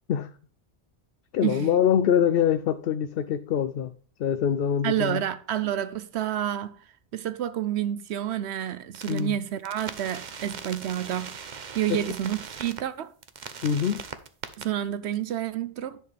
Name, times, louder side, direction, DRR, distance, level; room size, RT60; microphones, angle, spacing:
voice 1, 1.3-3.9 4.2-5.2 9.1-9.4 11.9-12.0 13.6-14.0, left 8 dB, 65° left, 0.7 m, -24 dB
voice 2, 4.8-11.3 11.7-13.1 14.6-16.0, right 11 dB, 80° right, 0.9 m, -29 dB
sound 1, 8.9-9.2 9.6-12.8 13.2-14.6, right 6 dB, 45° right, 0.9 m, -39 dB
10.0 x 6.6 x 3.3 m
omnidirectional pair, 1.1 m